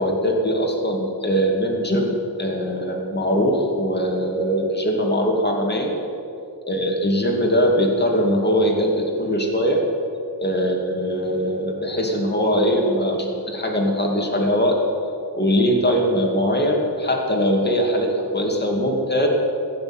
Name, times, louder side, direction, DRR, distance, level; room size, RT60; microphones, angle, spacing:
voice 1, 0.0-5.9 6.7-9.8 10.4-14.8 15.3-19.3, equal, 25° left, 0 dB, 2.5 m, -21 dB
16.0 x 6.9 x 8.9 m, 2.7 s
wide cardioid pair, 90°, 41 cm